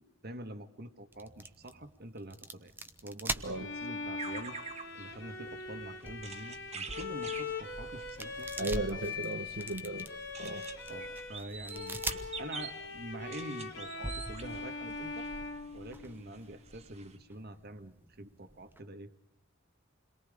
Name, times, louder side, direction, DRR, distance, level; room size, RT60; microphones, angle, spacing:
voice 1, 0.0-2.7 3.0-4.6 4.9-9.0 10.9-12.1 12.4-15.3 15.7-19.1, right 1 dB, 50° right, 9 dB, 1.7 m, -46 dB
sound 1, 1.1-18.8, right 2 dB, 10° right, 1.1 m, -45 dB
Bowed string instrument, 3.5-11.4 11.7-16.5, left 4 dB, 60° left, 2.6 m, -42 dB
Lyrebird imitating sounds at Healesville Sanctuary, 4.2-15.9 16.3-16.4 16.7-17.2, right 5 dB, 35° right, 1.5 m, -47 dB
voice 2, 8.6-10.1 10.4-10.6 12.1-12.2, right 2 dB, 70° right, 5 dB, 1.4 m, -36 dB
29.0 x 22.5 x 5.1 m, 0.70 s
head